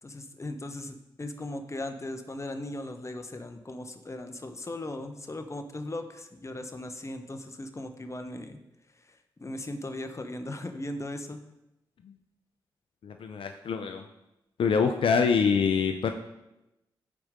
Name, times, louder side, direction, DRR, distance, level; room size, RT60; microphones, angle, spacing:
voice 1, 0.0-8.6 9.0-11.4, left 1 dB, 30° left, 7 dB, 1.1 m, -38 dB
voice 2, 13.0-14.0 14.6-16.1, left 6 dB, 70° left, 6 dB, 0.6 m, -25 dB
13.5 x 4.7 x 3.7 m, 0.92 s
supercardioid pair, 40°, 10 cm